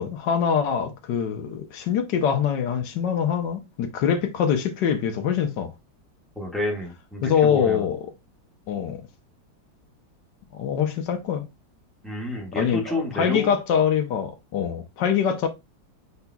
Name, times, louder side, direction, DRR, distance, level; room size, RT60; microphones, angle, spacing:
voice 1, 0.0-5.7 7.2-8.0 8.7-9.0 10.5-11.4 12.5-15.5, left 8 dB, 70° left, 1.4 m, -24 dB
voice 2, 6.3-7.9 12.0-13.5, left 1 dB, ahead, 1.4 m, -30 dB
5.3 x 4.3 x 2.3 m
omnidirectional pair, 2.1 m